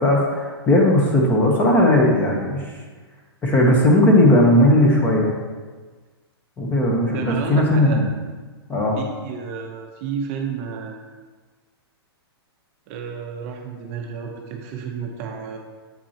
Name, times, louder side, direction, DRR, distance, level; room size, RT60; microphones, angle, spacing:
voice 1, 0.0-2.8 3.4-5.3 6.6-8.1 8.7-9.0, left 1 dB, 15° left, -1 dB, 0.9 m, -17 dB
voice 2, 7.1-8.0 9.0-11.0 12.9-15.6, right 6 dB, 30° right, 2 dB, 0.7 m, -31 dB
8.2 x 5.9 x 2.8 m, 1.4 s
hypercardioid pair, 160°, 14 cm